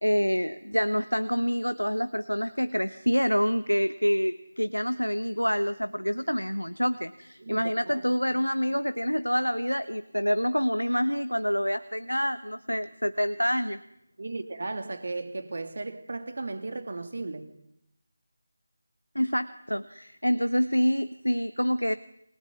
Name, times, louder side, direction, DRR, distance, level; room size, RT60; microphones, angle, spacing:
voice 1, 0.0-13.8 19.1-21.9, equal, 90° left, 1.1 m, -27 dB
voice 2, 7.4-8.0 14.2-17.5, right 3 dB, 50° right, 2.7 m, -35 dB
28.0 x 20.5 x 9.5 m
figure-of-eight pair, 160°, 0 cm